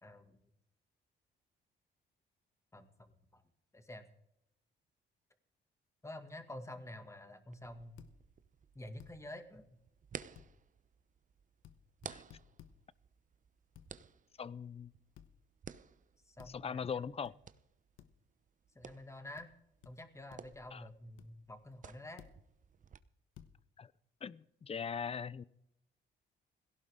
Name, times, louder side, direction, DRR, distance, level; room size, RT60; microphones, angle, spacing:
voice 1, 0.0-0.4 2.7-3.4 3.7-4.1 6.0-8.0 8.7-9.8 16.2-17.0 18.7-19.5 19.8-22.2, left 1 dB, 15° left, 7 dB, 2.2 m, -49 dB
sound 1, 7.5-23.0, right 7 dB, 40° right, 0.9 m, -55 dB
sound 2, 8.0-8.1 9.0-9.1 10.4-10.5 11.6-11.8 12.0-12.8 13.8-13.9 15.2-15.3 16.4-16.6 17.2-17.3 18.0-18.1 19.4-19.5 19.8-19.9 20.3-20.6 21.2-21.3 22.2-22.4 23.4-23.5, left 10 dB, 85° left, 1.2 m, -56 dB
voice 2, 14.4-14.9 16.5-17.3 20.7-20.9 23.8-23.9 24.2-25.4, left 6 dB, 30° left, 20 dB, 0.6 m, -40 dB
18.0 x 16.5 x 3.8 m, 0.81 s
cardioid pair, 90°, 20 cm